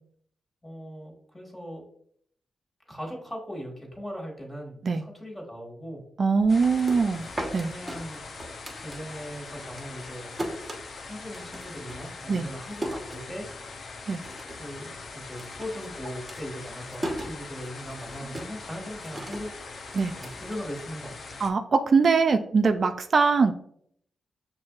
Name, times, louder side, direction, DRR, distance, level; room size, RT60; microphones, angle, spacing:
voice 1, 0.6-1.9 2.9-6.0 7.6-8.2 8.7-10.3 11.0-13.5 14.6-19.5 20.2-21.4, equal, 20° left, -1 dB, 1.7 m, -39 dB
voice 2, 6.2-7.7 12.3-12.5 14.1-14.2 20.0-20.1 21.4-23.5, right 4 dB, 55° right, 7 dB, 0.3 m, -22 dB
sound 1, 6.4-9.3 9.6-13.8 14.1-14.7 15.0-21.2, right 1 dB, 20° right, 1.1 m, -38 dB
sound 2, 6.5-21.5, left 3 dB, 60° left, 0.6 m, -42 dB
6.1 x 2.6 x 2.4 m, 0.65 s
cardioid pair, 55°, 0 cm